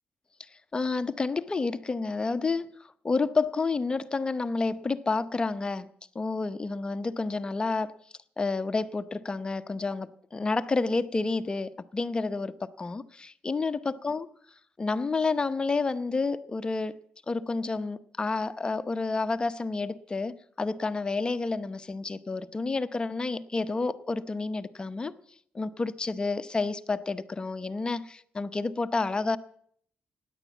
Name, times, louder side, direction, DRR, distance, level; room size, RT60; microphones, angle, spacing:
voice 1, 0.4-5.9 6.1-8.0 8.4-14.3 14.8-17.0 17.3-25.1 25.5-29.4, left 3 dB, 25° left, 0.7 m, -30 dB
16.5 x 10.0 x 8.2 m
cardioid pair, 105°, 4 cm